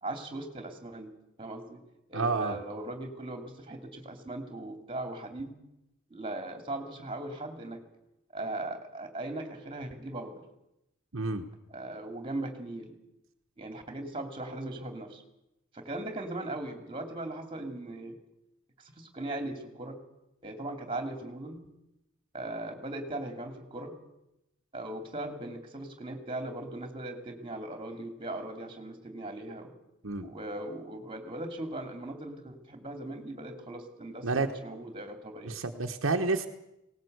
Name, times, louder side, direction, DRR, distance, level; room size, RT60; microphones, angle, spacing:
voice 1, 0.0-1.1 1.4-1.8 2.1-5.6 6.1-7.8 8.3-10.4 11.7-13.0 13.6-15.2 15.7-18.2 18.8-20.0 20.4-21.6 22.3-24.0 24.7-29.7 30.2-35.6, right 1 dB, 25° right, 6 dB, 2.8 m, -39 dB
voice 2, 2.1-2.6 11.1-11.4 30.0-30.3 34.2-34.5 35.4-36.5, right 3 dB, 65° right, 4 dB, 1.2 m, -29 dB
19.0 x 18.5 x 8.0 m, 0.89 s
head